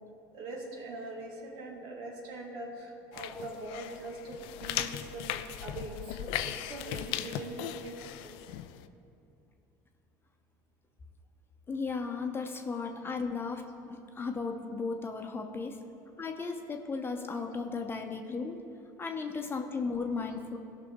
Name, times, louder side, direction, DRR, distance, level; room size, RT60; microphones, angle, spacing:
voice 1, 0.3-8.4 19.0-19.1, right 2 dB, 65° right, 0 dB, 2.0 m, -42 dB
sound 1, 3.1-8.9, left 12 dB, 70° left, 0.5 m, -38 dB
voice 2, 11.7-15.8 16.2-18.6 19.0-20.6, left 4 dB, 25° left, 4 dB, 0.9 m, -35 dB
16.5 x 5.9 x 3.7 m, 2.6 s
hypercardioid pair, 85°, 9 cm